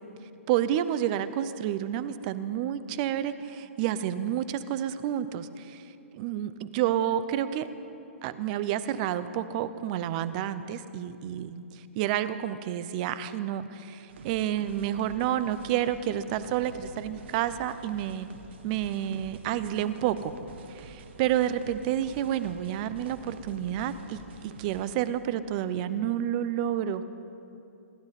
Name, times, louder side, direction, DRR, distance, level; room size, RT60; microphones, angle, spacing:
voice 1, 0.5-5.8 6.1-7.7 8.2-18.3 18.6-20.3 20.7-27.1, right 11 dB, 35° right, 14 dB, 0.7 m, -30 dB
sound 1, 14.1-25.0, right 4 dB, 55° right, 1.5 m, -48 dB
27.5 x 12.0 x 4.2 m, 2.8 s
figure-of-eight pair, 125°, 7 cm